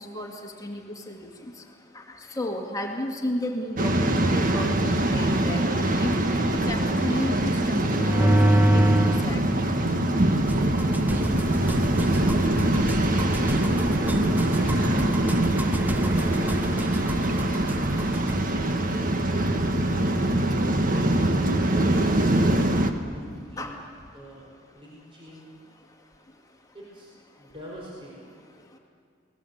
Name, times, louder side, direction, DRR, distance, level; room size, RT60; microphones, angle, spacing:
voice 1, 0.0-1.5 1.9-6.1 6.7-9.4 23.6-23.7, left 1 dB, 20° left, 1 dB, 2.0 m, -33 dB
Waves surf, 3.8-22.9, right 1 dB, 45° right, 1.6 m, -23 dB
sound 1, 7.9-9.3 9.9-18.4, right 1 dB, 10° right, 0.5 m, -27 dB
voice 2, 13.8-15.1 15.9-17.6 18.9-21.3 22.1-23.8 24.1-25.5 26.7-27.1 27.4-28.4, right 1 dB, 30° right, -4 dB, 4.5 m, -43 dB
28.5 x 19.0 x 8.0 m, 2.3 s
head